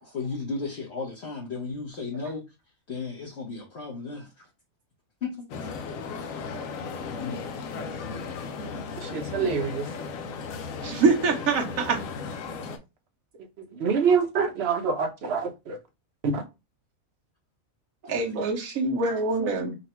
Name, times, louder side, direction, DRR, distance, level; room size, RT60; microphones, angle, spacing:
voice 1, 0.0-2.4 2.9-4.5 5.2-5.7 6.9-7.5 18.1-18.2, left 4 dB, 55° left, 1.3 m, -35 dB
sound 1, 5.5-12.8, left 5 dB, 75° left, 1.1 m, -36 dB
voice 2, 9.0-9.9 12.6-12.8 13.6-15.8 16.2-16.4, right 5 dB, 55° right, 1.0 m, -26 dB
voice 3, 10.8-12.0 18.0-19.8, right 3 dB, 75° right, 1.3 m, -25 dB
4.0 x 2.3 x 4.3 m
omnidirectional pair, 1.4 m